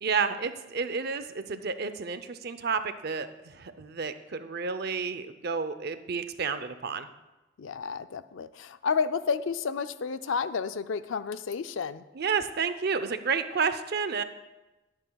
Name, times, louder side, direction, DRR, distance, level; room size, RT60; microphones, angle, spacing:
voice 1, 0.0-7.1 12.1-14.2, right 5 dB, 55° right, 11 dB, 0.6 m, -31 dB
voice 2, 7.6-12.0, left 5 dB, 85° left, 12 dB, 0.5 m, -31 dB
20.0 x 8.9 x 2.3 m, 1.1 s
head